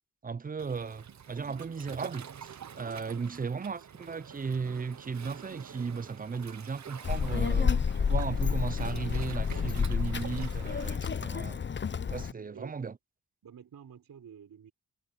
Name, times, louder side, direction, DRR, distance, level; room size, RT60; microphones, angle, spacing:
voice 1, 0.2-7.8 8.1-11.6 12.1-12.9, right 5 dB, 25° right, 0.4 m, -36 dB
Waves surf, 0.6-11.0, right 8 dB, 55° right, 0.9 m, -47 dB
voice 2, 2.7-3.1 12.0-12.8 13.4-14.7, right 8 dB, 75° right, 4.0 m, -51 dB
Child speech kid speaking, 7.0-12.3, left 6 dB, 35° left, 0.6 m, -30 dB
wide cardioid pair, 115°, 34 cm